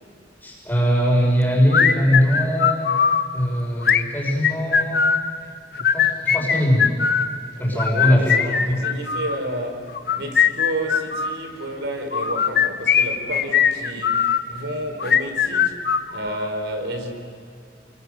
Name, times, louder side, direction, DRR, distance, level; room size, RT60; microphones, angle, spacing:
voice 1, 0.4-2.9 3.3-5.0 5.7-6.9 7.6-8.4 8.7-8.8, equal, 10° left, -3 dB, 5.3 m, -21 dB
sound 1, 1.7-3.2 3.8-5.2 5.7-7.3 7.8-9.4 9.9-11.4 12.1-14.4 15.0-16.5, left 7 dB, 55° left, 1.0 m, -20 dB
voice 2, 7.5-9.9 10.1-15.8 16.1-17.1, right 1 dB, 85° right, 5 dB, 4.2 m, -31 dB
29.5 x 22.5 x 6.7 m, 2.5 s
head